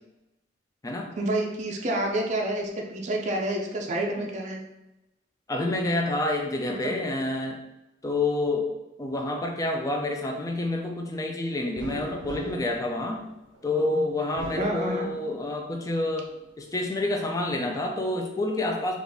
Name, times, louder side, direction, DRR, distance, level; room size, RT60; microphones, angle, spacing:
voice 1, 1.2-4.6 6.8-6.9 14.6-15.1, right 1 dB, 40° right, 1 dB, 0.5 m, -28 dB
voice 2, 5.5-7.6 8.0-8.7 9.0-13.2 13.6-16.3 16.6-19.0, left 2 dB, 20° left, 2 dB, 0.4 m, -28 dB
sound 1, 11.8-13.7 14.2-15.6 16.0-16.9, right 2 dB, 85° right, 0.6 m, -41 dB
3.9 x 2.4 x 3.4 m, 0.94 s
head